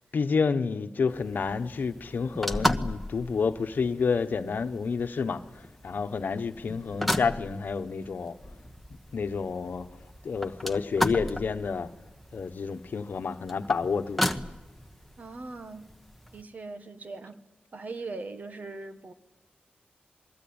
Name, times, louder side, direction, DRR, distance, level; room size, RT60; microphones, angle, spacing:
voice 1, 0.1-5.4 5.8-8.3 9.1-9.9 10.2-11.9 12.3-14.2, left 5 dB, 65° left, 1.2 m, -29 dB
sound 1, 1.1-16.4, left 1 dB, ahead, 1.2 m, -35 dB
voice 2, 15.2-15.9 16.3-17.4 17.7-19.1, right 3 dB, 50° right, 1.6 m, -40 dB
27.0 x 21.0 x 8.9 m
wide cardioid pair, 115°, 3 cm